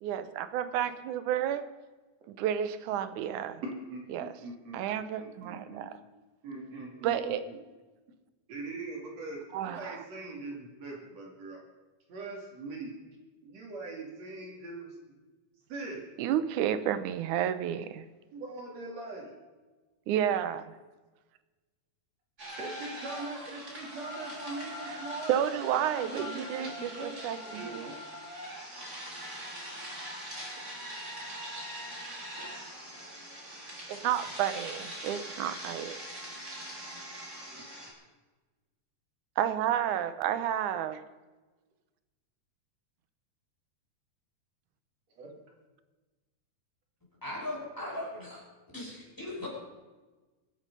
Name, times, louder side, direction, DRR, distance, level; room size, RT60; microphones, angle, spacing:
voice 1, 0.0-1.6 2.3-3.6 4.1-4.3 4.7-5.9 7.0-7.4 9.5-10.0 16.2-18.1 20.1-20.7 24.9-25.0 25.3-27.9 33.9-36.0 39.4-41.0, right 10 dB, 85° right, 13 dB, 2.3 m, -31 dB
voice 2, 3.6-5.9 6.4-7.6 8.5-11.6 12.1-13.0 13.4-14.9 15.7-16.1 18.3-19.3 22.6-25.4 25.8-28.0 37.5-37.6 45.2-45.3, right 3 dB, 60° right, 0 dB, 3.6 m, -41 dB
sound 1, 22.4-37.9, equal, 20° right, 4.1 m, -42 dB
voice 3, 47.2-48.4 48.7-49.5, left 1 dB, 5° left, -5 dB, 5.8 m, -38 dB
24.0 x 8.8 x 5.4 m, 1.2 s
omnidirectional pair, 3.5 m